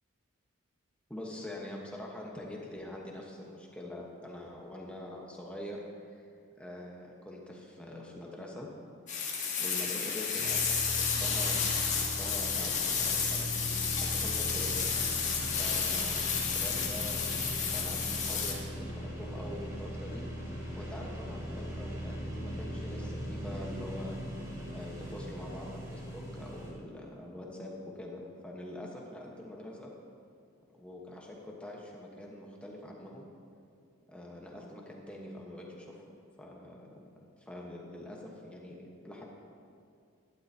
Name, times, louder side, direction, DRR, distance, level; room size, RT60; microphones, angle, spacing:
voice 1, 1.1-6.3 6.6-8.7 9.6-14.8 15.5-20.2 20.7-24.2 24.7-29.9 30.7-33.3 34.1-36.0 36.4-36.9 37.4-39.2, left 1 dB, 5° left, -2 dB, 1.2 m, -44 dB
sound 1, 9.1-18.5, left 6 dB, 35° left, 1.4 m, -31 dB
sound 2, 10.4-26.7, equal, 15° right, 2.0 m, -39 dB
11.5 x 11.5 x 2.8 m, 2.3 s
head